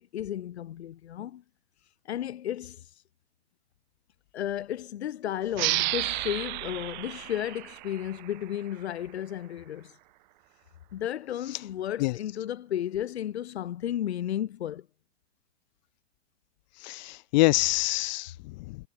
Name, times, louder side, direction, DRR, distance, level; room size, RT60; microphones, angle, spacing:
voice 1, 0.0-1.4 2.1-2.9 4.3-9.9 10.9-14.9, left 11 dB, 75° left, 2.1 m, -33 dB
sound 1, 5.5-8.8, right 20 dB, 45° right, 0.6 m, -32 dB
voice 2, 16.8-18.8, left 22 dB, 45° left, 0.7 m, -26 dB
hypercardioid pair, 135°, 33 cm